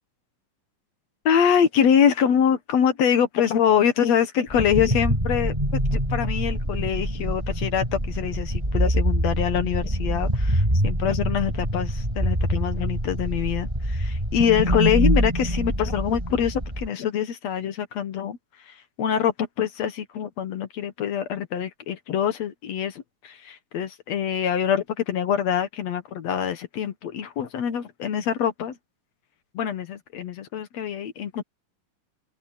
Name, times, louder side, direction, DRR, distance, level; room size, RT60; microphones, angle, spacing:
voice 1, 1.3-18.4 18.6-28.8 29.5-31.4, left 8 dB, 60° left, 2.0 m, -24 dB
sound 1, 4.5-16.9, equal, 10° right, 7.6 m, -25 dB
open air
omnidirectional pair, 4.1 m